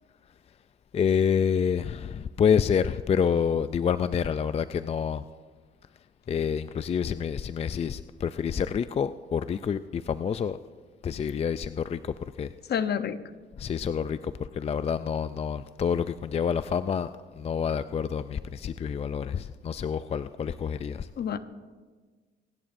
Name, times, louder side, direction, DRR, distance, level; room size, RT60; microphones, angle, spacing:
voice 1, 0.9-5.2 6.3-10.6 11.0-12.5 13.6-17.1 17.4-21.1, left 7 dB, 30° left, 13 dB, 0.3 m, -28 dB
voice 2, 12.7-13.2 21.2-21.4, left 8 dB, 55° left, 12 dB, 0.8 m, -28 dB
25.0 x 11.0 x 2.6 m, 1.4 s
cardioid pair, 90°, 20 cm